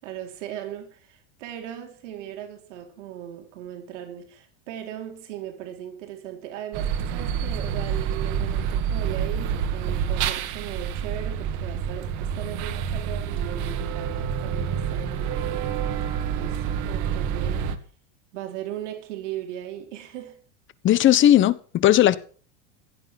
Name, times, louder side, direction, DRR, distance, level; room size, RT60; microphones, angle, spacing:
voice 1, 0.0-17.7 18.3-20.4, right 11 dB, 85° right, 3.9 m, -38 dB
sound 1, 6.7-17.8, right 8 dB, 55° right, 2.1 m, -28 dB
voice 2, 20.8-22.2, left 12 dB, 35° left, 1.2 m, -17 dB
16.0 x 10.5 x 6.0 m
supercardioid pair, 135°, 36 cm